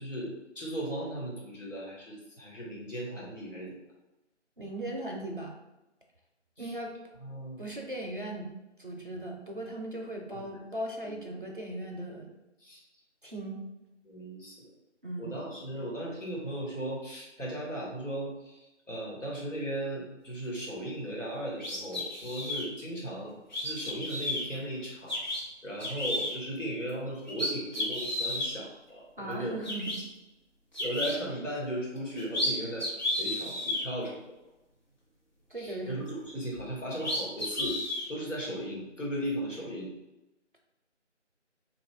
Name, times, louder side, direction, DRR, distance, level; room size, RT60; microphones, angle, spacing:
voice 1, 0.0-3.8 6.6-6.7 7.2-7.6 10.3-10.6 11.0-11.2 12.6-12.8 14.0-14.6 15.2-25.2 25.6-29.6 30.8-32.9 33.1-34.2 35.5-37.8 38.1-39.9, right 1 dB, 90° left, -4 dB, 1.4 m, -37 dB
voice 2, 4.6-5.5 6.6-6.9 7.6-8.5 8.8-12.3 13.2-13.6 15.0-15.5 29.2-29.9 35.5-35.9, right 1 dB, 45° right, 0 dB, 0.5 m, -38 dB
sound 1, 21.6-22.7 23.5-24.4 25.1-25.4 25.8-26.3 26.9-27.0 27.3-28.5 29.3-29.4 29.6-30.0 30.7-31.1 32.0-32.5 32.8-33.8 36.6-36.7 37.0-38.1, left 1 dB, 40° left, 1.0 m, -32 dB
3.0 x 2.4 x 3.3 m, 1.0 s
figure-of-eight pair, 165°, 36 cm